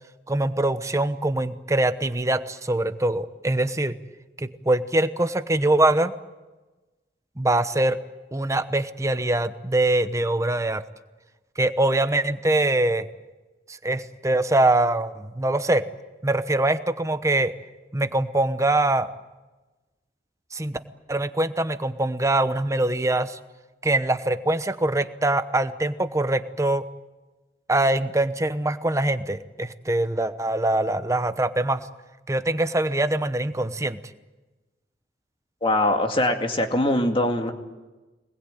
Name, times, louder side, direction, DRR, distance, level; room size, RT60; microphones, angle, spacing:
voice 1, 0.3-4.0 4.4-6.1 7.4-8.0 8.3-10.8 11.6-13.1 13.8-15.8 16.2-17.5 17.9-19.1 20.5-20.8 21.1-23.4 23.8-26.8 27.7-31.8 32.3-34.0, right 2 dB, 15° right, 11 dB, 1.0 m, -23 dB
voice 2, 35.6-37.5, left 1 dB, 30° left, 4 dB, 2.3 m, -22 dB
25.5 x 20.5 x 9.1 m, 1.2 s
head